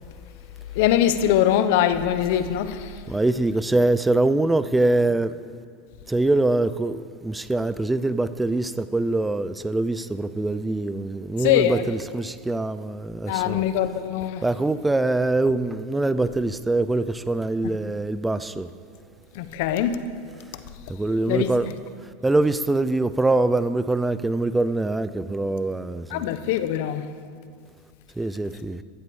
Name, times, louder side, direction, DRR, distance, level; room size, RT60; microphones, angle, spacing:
voice 1, 0.7-3.0 11.4-11.9 13.3-14.5 17.6-17.7 19.3-20.1 21.3-21.7 26.1-27.1, left 11 dB, 70° left, 0.8 m, -22 dB
voice 2, 3.1-5.3 6.1-13.6 14.4-18.7 20.9-21.7 22.2-26.3 28.2-28.8, right 2 dB, 10° right, 0.5 m, -23 dB
13.5 x 8.0 x 7.1 m
hypercardioid pair, 110°, 0 cm